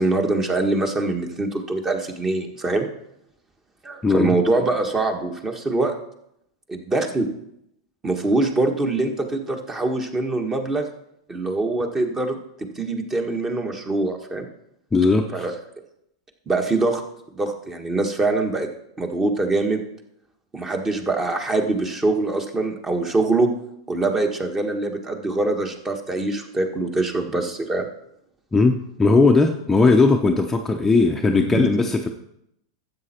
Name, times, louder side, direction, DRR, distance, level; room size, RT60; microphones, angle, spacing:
voice 1, 0.0-2.9 3.8-5.9 6.7-7.3 8.0-10.9 11.3-14.4 15.3-15.5 16.5-17.0 17.3-18.7 19.0-19.8 20.5-23.5 23.9-27.8 31.5-31.6, right 2 dB, 20° right, 5 dB, 1.6 m, -23 dB
voice 2, 4.0-4.4 14.9-15.5 28.5-32.1, left 3 dB, 10° left, 3 dB, 0.8 m, -18 dB
12.5 x 8.0 x 4.4 m, 0.78 s
hypercardioid pair, 110°, 2 cm